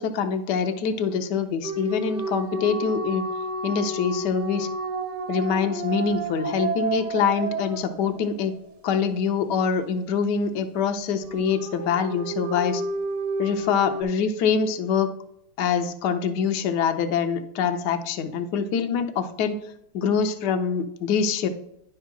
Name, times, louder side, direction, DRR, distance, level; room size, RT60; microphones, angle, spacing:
voice 1, 0.0-3.2 3.6-4.7 5.3-8.5 8.8-12.8 13.4-15.1 15.6-19.6 19.9-21.5, left 6 dB, 65° left, 7 dB, 1.1 m, -25 dB
sound 1, 1.6-8.6 11.2-14.0, right 1 dB, 55° right, 0.7 m, -31 dB
10.0 x 3.7 x 6.0 m, 0.75 s
omnidirectional pair, 2.4 m